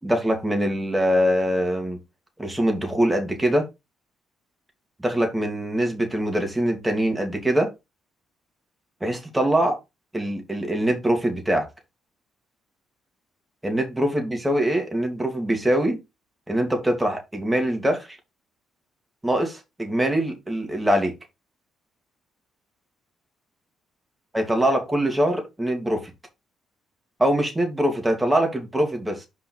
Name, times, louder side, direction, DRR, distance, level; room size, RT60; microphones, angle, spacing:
voice 1, 0.0-2.0 2.4-3.7 5.0-7.7 9.0-9.8 10.1-11.7 13.6-16.0 16.5-18.2 19.2-21.1 24.3-26.1 27.2-29.3, right 1 dB, 10° right, 2.7 m, -23 dB
5.7 x 4.8 x 4.6 m
cardioid pair, 80°, 0 cm